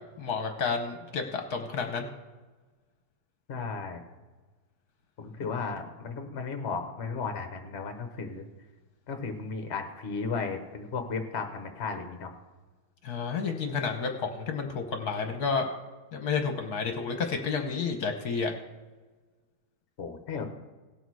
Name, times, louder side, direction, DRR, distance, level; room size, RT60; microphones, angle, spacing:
voice 1, 0.2-2.1 5.4-5.5 13.0-15.7 16.1-18.5, left 5 dB, 65° left, 5 dB, 1.4 m, -30 dB
voice 2, 3.5-4.0 5.2-8.4 9.1-12.3 20.0-20.4, left 4 dB, 45° left, 6 dB, 1.2 m, -34 dB
17.5 x 6.4 x 4.7 m, 1.3 s
omnidirectional pair, 1.9 m